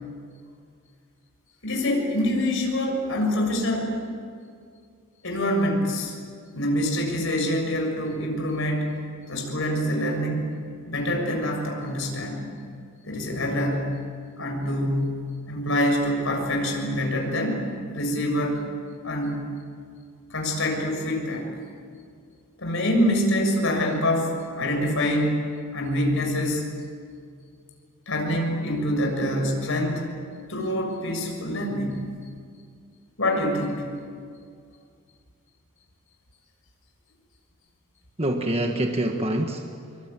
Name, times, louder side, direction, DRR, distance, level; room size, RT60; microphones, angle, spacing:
voice 1, 1.6-3.9 5.2-6.1 6.5-12.5 13.0-14.0 14.4-17.6 17.9-18.6 19.0-19.4 20.3-21.5 22.6-26.6 28.1-30.1 30.5-32.1 33.2-33.9, left 1 dB, 65° left, 1 dB, 6.9 m, -25 dB
voice 2, 38.2-40.1, right 1 dB, 30° right, 3 dB, 1.5 m, -26 dB
26.0 x 24.5 x 9.1 m, 2.2 s
head